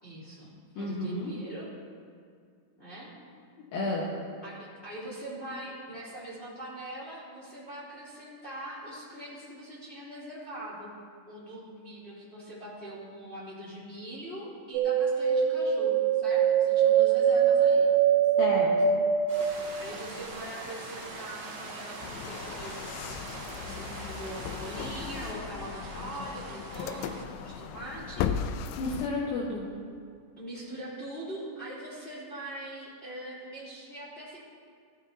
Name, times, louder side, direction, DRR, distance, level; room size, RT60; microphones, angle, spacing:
voice 1, 0.0-1.7 2.8-3.1 4.4-10.9 11.3-17.9 19.8-28.2 30.4-34.4, right 1 dB, 15° left, -8 dB, 2.9 m, -42 dB
voice 2, 0.8-1.3 3.7-4.1 18.4-19.0 28.8-29.6, left 2 dB, 65° left, -5 dB, 2.7 m, -31 dB
sound 1, 14.7-24.2 24.4-25.3 25.6-26.6 26.9-27.0, right 8 dB, 80° right, 3.2 m, -25 dB
sound 2, 19.3-25.3, right 1 dB, 20° right, 3.9 m, -43 dB
sound 3, 22.0-29.1, left 8 dB, 85° left, 2.3 m, -37 dB
16.5 x 14.0 x 2.8 m, 2.2 s
omnidirectional pair, 5.4 m